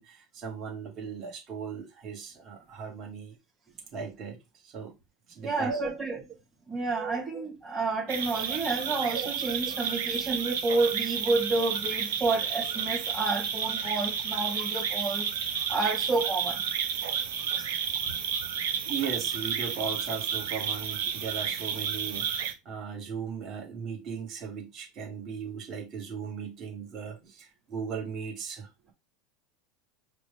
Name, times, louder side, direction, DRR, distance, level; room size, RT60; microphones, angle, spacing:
voice 1, 0.0-3.4 3.9-4.4 4.6-4.9 5.3-5.9 6.9-7.4 8.3-8.4 9.0-9.3 9.6-9.8 18.8-28.9, right 6 dB, 40° right, 1.7 m, -37 dB
voice 2, 5.4-6.2 6.7-15.3 15.7-16.6 17.6-17.7 18.1-18.2, right 3 dB, 10° right, 1.8 m, -30 dB
sound 1, 8.1-22.5, right 7 dB, 80° right, 0.8 m, -31 dB
4.9 x 2.3 x 3.3 m
hypercardioid pair, 105°, 0 cm